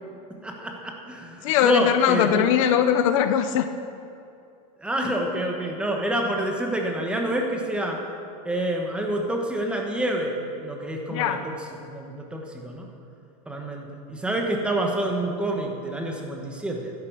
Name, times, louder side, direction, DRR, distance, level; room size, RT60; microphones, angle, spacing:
voice 1, 0.3-2.5 4.8-8.0 8.4-11.6 11.9-12.9 13.5-16.9, right 1 dB, 5° right, 1 dB, 1.3 m, -28 dB
voice 2, 1.4-3.6 11.1-11.4, left 9 dB, 55° left, 9 dB, 0.7 m, -21 dB
11.5 x 11.0 x 6.5 m, 2.6 s
supercardioid pair, 155°, 20 cm